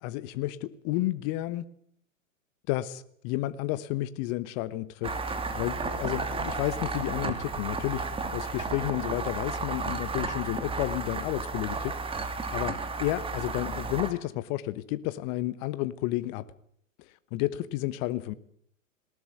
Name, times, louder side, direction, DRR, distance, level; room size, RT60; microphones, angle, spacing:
voice 1, 0.0-1.6 2.7-5.2 5.5-16.4 17.0-18.3, left 16 dB, 35° left, 15 dB, 1.1 m, -31 dB
sound 1, 5.0-14.1, right 4 dB, 15° right, 2.6 m, -33 dB
20.0 x 18.5 x 9.2 m, 0.66 s
figure-of-eight pair, 110°, 40 cm